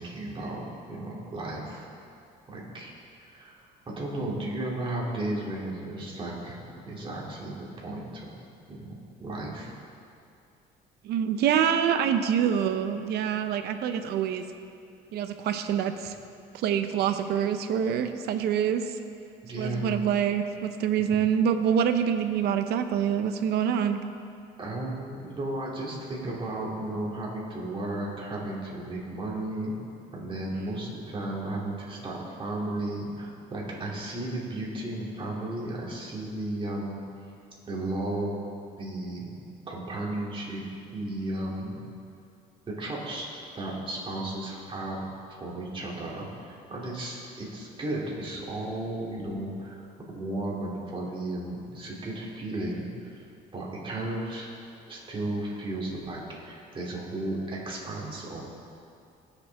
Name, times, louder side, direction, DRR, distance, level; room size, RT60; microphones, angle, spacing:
voice 1, 0.0-1.9 2.5-2.9 3.2-6.6 6.8-8.2 8.7-9.7 19.4-20.0 24.6-29.7 30.1-37.0 37.7-38.4 38.8-39.3 39.7-40.6 40.9-41.8 42.7-45.0 45.4-49.8 50.1-53.2 53.5-54.5 54.9-58.4, right 1 dB, 30° right, -4 dB, 2.8 m, -34 dB
voice 2, 11.0-14.4 15.1-16.2 16.5-19.0 19.6-24.0 30.5-30.8, right 8 dB, 75° right, 8 dB, 0.8 m, -26 dB
19.5 x 6.9 x 3.5 m, 2.5 s
cardioid pair, 110°, 17 cm